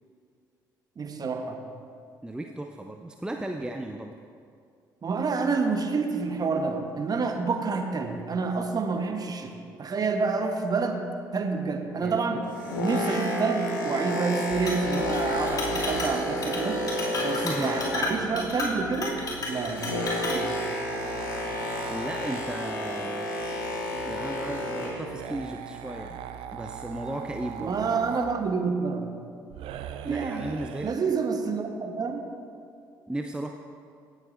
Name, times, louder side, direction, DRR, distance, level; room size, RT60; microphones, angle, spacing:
voice 1, 1.0-1.6 5.0-9.5 9.8-12.4 12.8-16.8 17.2-19.2 19.5-19.9 20.2-20.5 27.6-29.1 30.0-30.5 30.8-32.3, right 4 dB, 40° right, 5 dB, 1.1 m, -28 dB
voice 2, 2.2-4.1 12.0-12.2 17.4-17.7 21.9-23.3 24.0-26.2 26.5-27.8 30.1-31.0 33.1-33.5, right 1 dB, 10° right, 4 dB, 0.5 m, -35 dB
Boat Water vehicle, 12.3-18.4 18.7-25.1 25.8-25.9, left 1 dB, 85° left, 1.3 m, -31 dB
sound 1, 14.5-22.4 23.4-28.4 29.5-30.9, right 8 dB, 60° right, 0.5 m, -41 dB
Chink clink, 14.7-15.2 15.5-16.2 16.4-16.6 16.9-20.4, left 2 dB, 40° left, 2.7 m, -32 dB
17.0 x 7.8 x 2.6 m, 2.4 s
hypercardioid pair, 45°, 10 cm